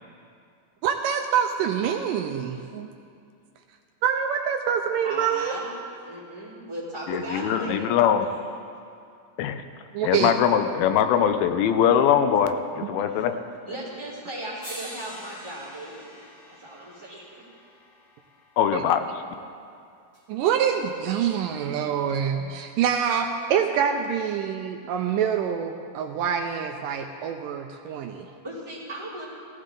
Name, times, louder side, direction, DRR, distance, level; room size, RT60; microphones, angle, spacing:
voice 1, 0.8-2.9 4.0-5.5 9.9-10.3 18.7-18.8 20.3-28.3, right 8 dB, 80° right, 5 dB, 2.1 m, -26 dB
voice 2, 5.0-5.7 6.0-8.3 12.1-12.3 13.1-13.3 13.7-16.2 16.5-17.6 28.4-29.3, right 1 dB, 10° right, -7 dB, 3.7 m, -37 dB
voice 3, 7.1-8.3 9.4-9.6 10.0-12.5 12.8-13.3 18.6-19.0, left 9 dB, 90° left, 8 dB, 2.6 m, -21 dB
sound 1, 14.0-14.1 14.6-18.8 20.1-20.2, equal, 30° left, 3.6 m, -45 dB
17.5 x 15.5 x 3.8 m, 2.4 s
omnidirectional pair, 4.2 m